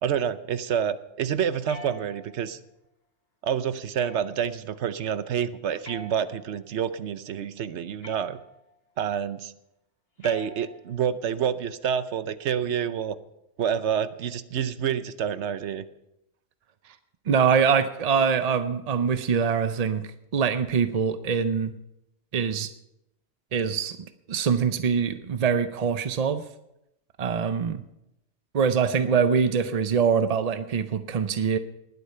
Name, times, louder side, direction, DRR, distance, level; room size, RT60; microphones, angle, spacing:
voice 1, 0.0-2.6 3.4-8.4 9.0-9.5 10.2-13.2 13.6-15.8, right 8 dB, 65° right, 14 dB, 1.0 m, -28 dB
sound 1, 1.6-2.5 4.0-4.6 5.8-6.7 8.0-8.7 10.2-11.1, right 1 dB, 50° left, 2.1 m, -45 dB
voice 2, 17.3-21.7 22.3-22.7 23.5-24.0 24.3-26.4 27.2-27.8 28.5-31.6, right 6 dB, 50° right, 10 dB, 0.5 m, -24 dB
19.5 x 8.2 x 5.6 m, 0.86 s
omnidirectional pair, 1.3 m